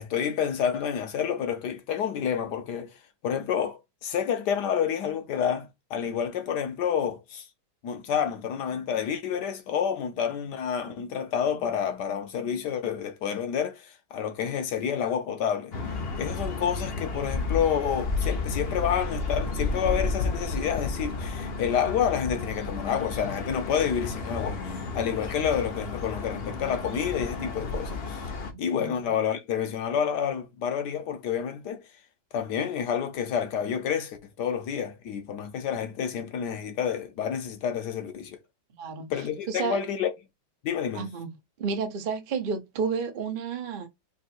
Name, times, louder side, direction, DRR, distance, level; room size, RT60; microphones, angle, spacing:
voice 1, 0.0-2.9 3.2-7.5 7.8-15.7 16.2-28.2 28.6-31.8 32.3-38.4 39.1-40.1 40.6-41.1, left 8 dB, 70° left, 1.2 m, -29 dB
sound 1, 15.7-28.5, left 3 dB, 50° left, 0.7 m, -32 dB
voice 2, 28.5-28.9 38.8-39.1 39.5-39.8 40.9-41.3 41.6-43.9, right 5 dB, 70° right, 0.5 m, -31 dB
3.6 x 2.8 x 4.2 m
omnidirectional pair, 2.1 m